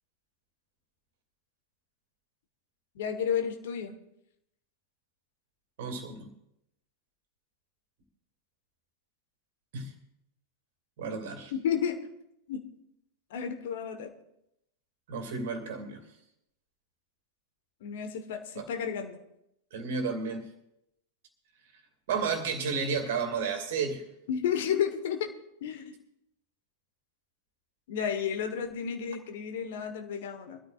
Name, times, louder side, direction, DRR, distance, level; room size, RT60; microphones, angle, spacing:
voice 1, 2.9-3.9 11.5-12.0 12.5-12.6 13.3-14.1 17.8-19.2 24.3-25.3 25.6-25.9 27.9-30.6, left 8 dB, 55° left, 7 dB, 1.3 m, -32 dB
voice 2, 5.8-6.3 9.7-9.9 11.0-11.5 15.1-16.0 18.6-18.7 19.7-20.4 22.1-24.0, right 5 dB, 55° right, 6 dB, 2.4 m, -32 dB
23.0 x 13.0 x 2.5 m, 0.82 s
figure-of-eight pair, 90°, 0 cm